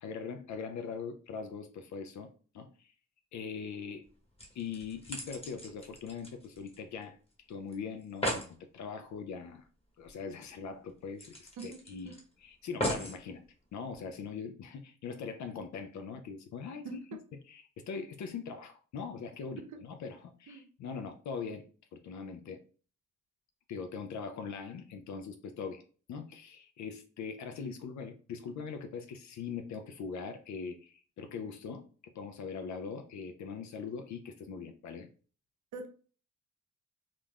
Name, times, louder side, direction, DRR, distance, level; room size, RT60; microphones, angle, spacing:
voice 1, 0.0-2.9 3.3-4.0 4.5-7.2 7.5-9.6 10.0-12.1 12.4-13.4 13.7-17.0 17.5-21.7 21.9-22.6 23.7-25.8 26.1-35.1, left 5 dB, 70° left, 0.4 m, -41 dB
sound 1, 4.0-4.1 4.4-7.0 7.3-7.4 7.7-7.8 8.0-8.5 10.0-10.1 10.5-10.6 11.2-12.2 12.8-13.2 13.9-14.0, equal, 20° left, 1.0 m, -37 dB
voice 2, 11.6-12.2 16.8-17.2 19.6-19.8 20.5-20.7 35.7-35.9, right 4 dB, 75° right, 0.6 m, -44 dB
2.5 x 2.2 x 3.3 m
cardioid pair, 70°, 30 cm